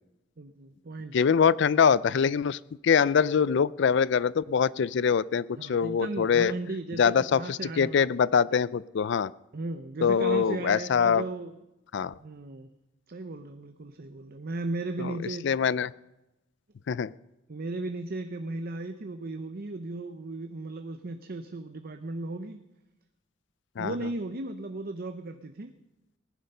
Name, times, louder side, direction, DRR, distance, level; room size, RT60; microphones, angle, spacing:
voice 1, 0.4-1.1 5.6-8.1 9.5-11.6 12.2-12.7 13.1-15.5 17.5-22.6 23.8-25.7, right 2 dB, 50° right, 8 dB, 0.7 m, -36 dB
voice 2, 1.1-6.5 7.0-9.3 10.0-11.2 11.9-12.1 15.0-15.1 15.4-15.9 16.9-17.1 23.8-23.9, left 6 dB, 65° left, 20 dB, 0.4 m, -24 dB
19.0 x 10.5 x 5.5 m, 0.95 s
head